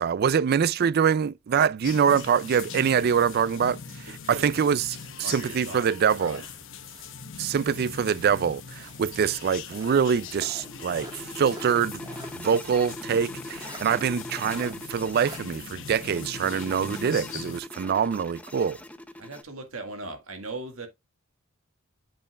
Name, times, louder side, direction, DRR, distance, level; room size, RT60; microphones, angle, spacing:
voice 1, 0.0-3.8 4.3-4.8 5.2-6.4 7.4-12.0 12.3-18.8, right 7 dB, 50° right, 0.3 m, -24 dB
sound 1, 1.8-17.6, left 6 dB, 65° left, 0.9 m, -41 dB
voice 2, 4.1-4.5 5.2-6.4 19.2-20.9, right 2 dB, 90° right, 1.8 m, -39 dB
sound 2, 4.5-7.2 7.5-9.1 9.7-12.4 12.8-12.9 13.6-13.9 14.4-14.7 15.2-15.4, right 2 dB, 20° right, 1.4 m, -47 dB
sound 3, 10.1-19.4, left 1 dB, 5° left, 0.5 m, -42 dB
8.8 x 5.6 x 2.3 m
head